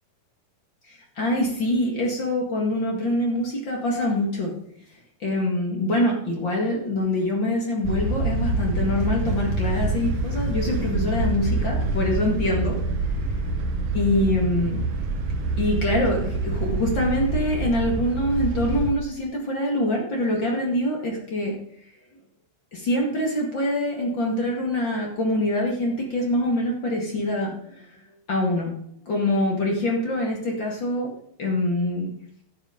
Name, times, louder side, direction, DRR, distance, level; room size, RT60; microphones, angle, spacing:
voice 1, 0.9-4.5 5.2-12.8 13.9-14.8 15.6-21.5 22.7-28.0 28.3-28.7 29.0-31.1 31.4-32.1, left 1 dB, 45° left, -1 dB, 1.6 m, -25 dB
sound 1, 7.8-18.9, right 2 dB, 65° right, 2.1 m, -26 dB
12.0 x 7.9 x 5.0 m, 0.71 s
omnidirectional pair, 5.1 m